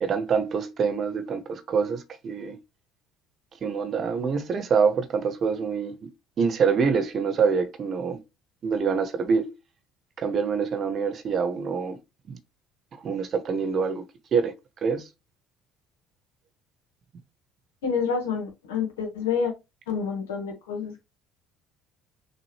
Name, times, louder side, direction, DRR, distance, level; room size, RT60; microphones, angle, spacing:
voice 1, 0.0-2.6 3.6-6.1 6.4-8.2 8.6-9.5 10.2-12.0 12.3-12.4 13.0-14.5 14.8-15.1, right 5 dB, 45° right, 1.0 m, -25 dB
voice 2, 17.8-19.5 19.9-21.0, left 6 dB, 75° left, 1.5 m, -28 dB
6.3 x 2.5 x 3.2 m
figure-of-eight pair, 55°, 0 cm